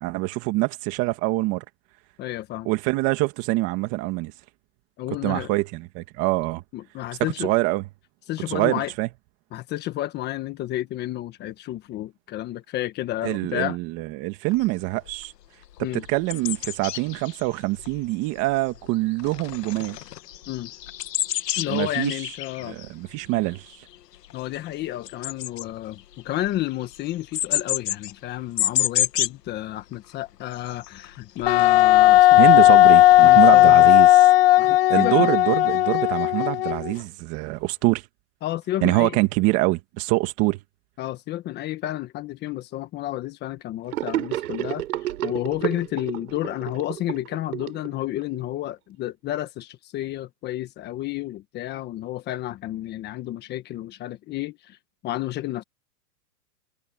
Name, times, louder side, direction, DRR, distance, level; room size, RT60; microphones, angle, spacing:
voice 1, 0.0-1.6 2.7-4.3 5.2-6.6 7.2-7.8 8.5-9.1 13.2-15.3 15.9-20.0 21.7-22.2 22.6-23.9 32.4-34.1 34.9-38.0 38.8-40.6, right 21 dB, 30° right, 1.9 m, -24 dB
voice 2, 2.2-2.7 5.0-5.5 6.7-7.5 8.3-8.9 9.5-13.8 15.8-16.0 20.5-20.7 21.6-22.8 24.3-32.7 33.2-33.9 34.6-35.3 38.4-39.2 41.0-54.8 55.0-55.6, left 14 dB, 20° left, 1.4 m, -31 dB
sound 1, 14.5-14.7 15.1-15.2 15.6-18.9 19.2-29.5 29.8-29.9 30.2-33.7, left 12 dB, 85° left, 1.0 m, -31 dB
Wind instrument woodwind instrument, 31.5-36.9, left 15 dB, 40° left, 0.6 m, -15 dB
Gurgling / Sink (filling or washing), 43.9-48.4, right 14 dB, 65° right, 5.1 m, -30 dB
hypercardioid pair, 150°, 47 cm